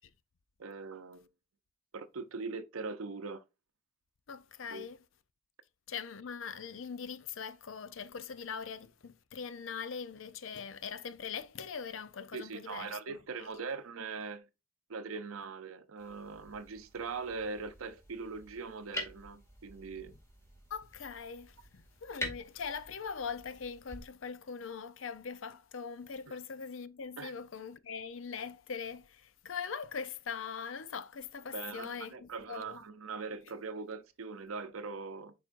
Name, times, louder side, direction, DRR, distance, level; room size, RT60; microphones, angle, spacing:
voice 1, 0.6-1.3 1.9-3.4 4.7-4.9 12.3-14.5 14.9-20.2 26.3-26.4 27.2-27.3 31.5-35.3, right 4 dB, 85° right, 0.6 m, -41 dB
voice 2, 4.3-5.0 5.9-13.2 20.7-32.8, left 6 dB, 65° left, 0.6 m, -41 dB
sound 1, 16.0-24.0, left 1 dB, 15° left, 2.2 m, -46 dB
10.5 x 4.3 x 2.5 m
head